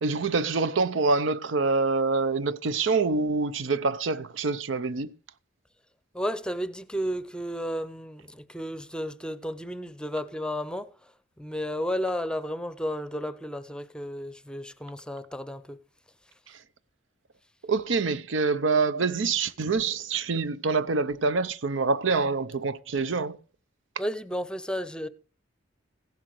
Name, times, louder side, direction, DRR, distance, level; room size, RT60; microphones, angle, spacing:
voice 1, 0.0-5.1 16.5-16.6 17.6-23.4, right 4 dB, 80° right, 0.7 m, -26 dB
voice 2, 6.1-10.9 11.4-15.8 24.0-25.1, equal, 5° left, 0.7 m, -33 dB
16.0 x 11.5 x 3.1 m
head